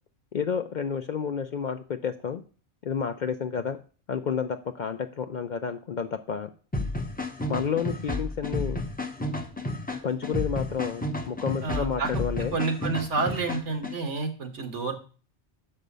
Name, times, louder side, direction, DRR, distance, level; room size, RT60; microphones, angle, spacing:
voice 1, 0.3-2.4 2.8-3.8 4.1-6.5 7.5-8.8 10.0-12.6, left 7 dB, 55° left, 8 dB, 0.5 m, -30 dB
sound 1, 6.7-13.9, left 1 dB, 10° left, 0.7 m, -32 dB
voice 2, 11.6-12.1 12.5-14.9, right 4 dB, 80° right, 5 dB, 1.7 m, -29 dB
6.2 x 5.4 x 6.7 m, 0.39 s
omnidirectional pair, 1.2 m